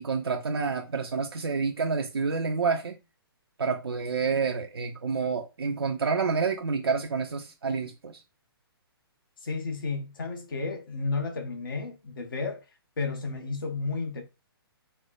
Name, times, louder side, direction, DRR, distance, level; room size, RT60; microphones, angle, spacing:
voice 1, 0.0-3.0 3.6-8.2, right 5 dB, 75° right, 0.4 m, -28 dB
voice 2, 9.4-12.6 13.0-14.2, left 4 dB, 60° left, 0.8 m, -32 dB
4.2 x 2.0 x 2.3 m
figure-of-eight pair, 125°, 13 cm